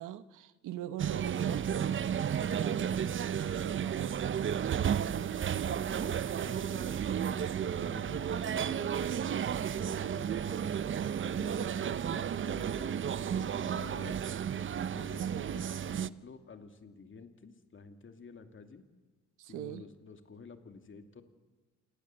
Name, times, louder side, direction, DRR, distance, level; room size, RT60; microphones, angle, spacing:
voice 1, 0.0-4.6 5.1-5.9 15.3-15.6 19.4-19.8, right 11 dB, 85° right, 1.1 m, -43 dB
sound 1, 1.0-16.1, right 8 dB, 40° right, 0.7 m, -33 dB
voice 2, 5.4-10.7 11.2-14.2 14.9-18.8 19.5-21.2, left 5 dB, 40° left, 2.6 m, -50 dB
28.5 x 18.0 x 7.8 m
cardioid pair, 90°, 30 cm